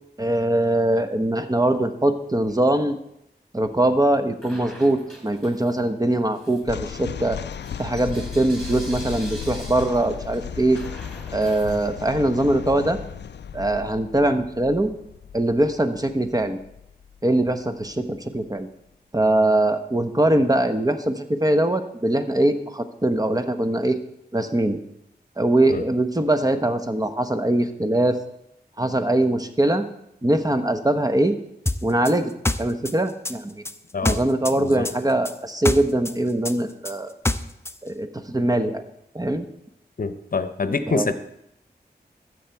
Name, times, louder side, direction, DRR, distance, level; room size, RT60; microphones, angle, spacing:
voice 1, 0.2-3.0 3.5-7.4 7.8-10.8 11.3-13.0 13.5-14.9 15.3-16.6 17.2-18.7 19.1-24.0 24.3-24.8 25.4-28.2 28.8-29.8 30.2-31.4 31.8-32.3 32.6-33.6 34.0-37.1 37.8-38.8 39.1-39.5 40.9-41.1, right 1 dB, 20° right, 9 dB, 1.0 m, -22 dB
Bell / Coin (dropping), 4.4-5.9 6.3-12.3, equal, ahead, 3.9 m, -44 dB
sound 1, 6.6-17.9, left 8 dB, 85° left, 0.4 m, -36 dB
sound 2, 31.7-34.6 34.8-37.8, left 2 dB, 15° left, 0.6 m, -26 dB
voice 2, 40.0-41.1, left 4 dB, 55° left, 11 dB, 0.9 m, -25 dB
13.0 x 7.8 x 4.6 m, 0.79 s
cardioid pair, 45°, 17 cm